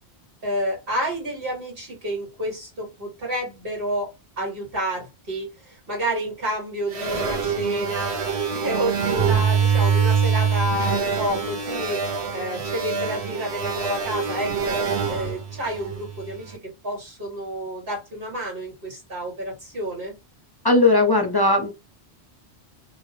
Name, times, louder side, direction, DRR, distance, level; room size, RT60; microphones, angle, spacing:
voice 1, 0.4-4.1 4.4-8.2 8.5-12.0 12.3-14.8 15.1-20.1, equal, 60° right, 2.3 m, -29 dB
sound 1, 6.9-16.4, right 6 dB, 80° right, 1.3 m, -24 dB
voice 2, 20.6-21.7, left 2 dB, 25° left, 0.6 m, -18 dB
3.1 x 2.9 x 3.0 m
omnidirectional pair, 1.1 m